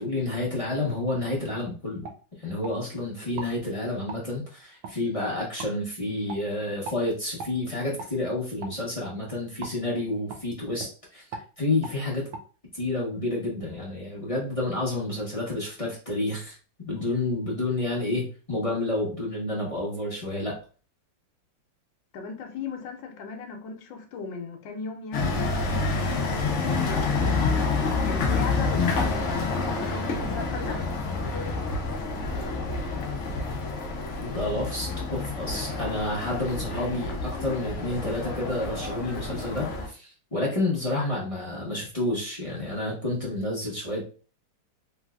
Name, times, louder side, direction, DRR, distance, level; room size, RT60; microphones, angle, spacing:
voice 1, 0.0-2.1 2.4-11.2 11.6-12.3 12.7-16.6 16.9-20.5 34.2-44.2, left 2 dB, 30° left, -5 dB, 0.7 m, -29 dB
sound 1, 0.9-1.0 1.5-1.6 2.0-2.8 3.3-3.5 4.1-4.2 4.8-5.0 5.6-5.7 6.3-6.4 6.8-7.0 7.4-7.6 8.0-8.1 8.6-8.8 9.6-9.8 10.3-10.4 10.8-10.9 11.3-11.5 11.8-12.0 12.3-12.4, right 4 dB, 80° right, 1.4 m, -38 dB
voice 2, 22.1-25.4 25.9-27.5 27.8-30.8, left 4 dB, 75° left, 4 dB, 1.3 m, -37 dB
sound 2, 25.1-39.9, left 3 dB, 60° left, 0.8 m, -28 dB
3.3 x 3.1 x 2.3 m, 0.37 s
omnidirectional pair, 2.1 m